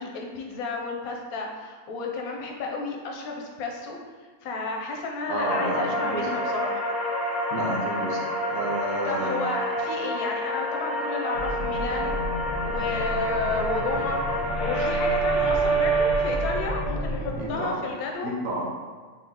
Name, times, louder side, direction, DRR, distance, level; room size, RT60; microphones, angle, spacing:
voice 1, 0.0-6.8 9.0-12.2 12.6-14.2 14.6-18.3, left 3 dB, 90° left, 1 dB, 1.2 m, -32 dB
voice 2, 5.3-6.3 7.5-8.2 8.5-9.4 17.4-17.8 18.2-18.6, right 1 dB, 70° right, -2 dB, 1.2 m, -30 dB
sound 1, 5.4-16.8, right 1 dB, ahead, 0.5 m, -28 dB
sound 2, 11.3-17.5, equal, 55° left, 1.1 m, -32 dB
4.0 x 3.1 x 3.6 m, 1.5 s
omnidirectional pair, 1.5 m